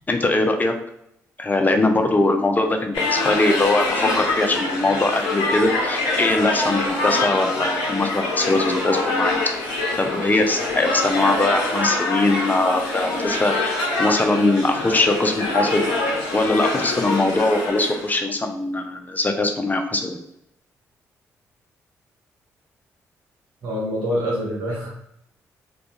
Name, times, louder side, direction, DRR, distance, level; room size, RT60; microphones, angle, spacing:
voice 1, 0.1-0.7 1.4-9.3 10.0-15.8 16.3-20.2, left 2 dB, 25° left, 5 dB, 0.5 m, -21 dB
sound 1, 2.9-18.2, left 2 dB, 90° left, 0.6 m, -25 dB
voice 2, 23.6-25.1, equal, 75° right, -5 dB, 1.0 m, -26 dB
2.3 x 2.2 x 2.8 m, 0.77 s
hypercardioid pair, 50°, 7 cm